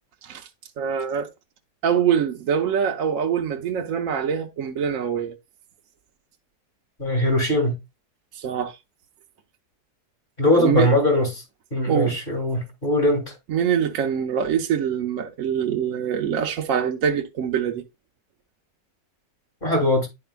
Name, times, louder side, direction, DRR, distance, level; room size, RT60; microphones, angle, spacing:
voice 1, 0.8-1.3 1.8-5.3 8.4-8.7 10.6-10.9 11.9-12.2 13.5-17.8, right 8 dB, 65° right, 1.0 m, -24 dB
voice 2, 7.0-7.8 10.4-11.4 11.7-13.3 19.6-20.1, left 1 dB, 30° left, 2.6 m, -21 dB
11.0 x 4.8 x 2.2 m
omnidirectional pair, 1.7 m